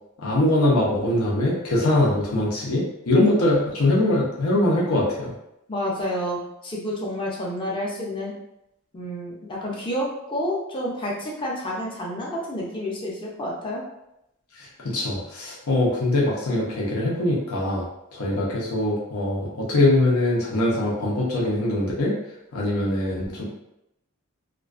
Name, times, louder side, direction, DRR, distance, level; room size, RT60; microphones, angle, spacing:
voice 1, 0.2-5.3 14.6-17.9 18.1-22.1 22.5-23.4, left 1 dB, 90° left, -4 dB, 0.6 m, -22 dB
voice 2, 5.7-8.3 8.9-13.8, equal, 25° left, -4 dB, 0.5 m, -29 dB
2.4 x 2.2 x 2.4 m, 0.84 s
head